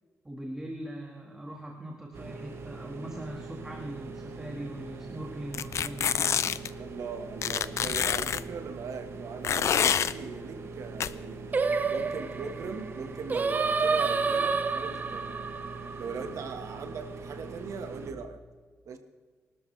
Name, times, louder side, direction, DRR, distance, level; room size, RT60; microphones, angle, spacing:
voice 1, 0.2-6.4, right 1 dB, 10° right, 0 dB, 1.8 m, -40 dB
sound 1, 2.1-18.1, right 4 dB, 50° right, 1.3 m, -42 dB
sound 2, 5.5-6.7 7.4-8.4 9.4-10.1 11.0-11.1, left 8 dB, 65° left, 0.5 m, -26 dB
voice 2, 6.8-11.6 11.9-15.5 16.0-18.4 18.8-19.0, right 5 dB, 75° right, 6 dB, 1.5 m, -40 dB
Singing, 11.5-16.8, right 4 dB, 30° right, 0.6 m, -29 dB
24.0 x 12.5 x 3.3 m, 1.5 s
wide cardioid pair, 140°, 5 cm